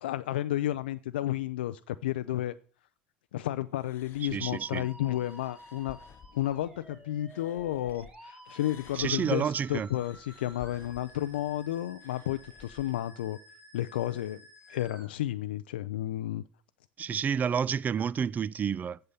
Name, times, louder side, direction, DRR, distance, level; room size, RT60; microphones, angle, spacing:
voice 1, 0.0-2.6 3.3-6.0 6.3-13.4 13.7-14.4 14.7-16.4, left 13 dB, 80° left, 0.4 m, -32 dB
sound 1, 3.7-8.1 8.4-12.9, left 7 dB, 45° left, 0.8 m, -55 dB
voice 2, 4.2-4.9 9.0-9.9 17.0-19.0, right 7 dB, 30° right, 0.4 m, -30 dB
Musical instrument, 4.4-15.1, equal, 15° right, 2.3 m, -53 dB
8.0 x 6.8 x 6.5 m
hypercardioid pair, 75°, 5 cm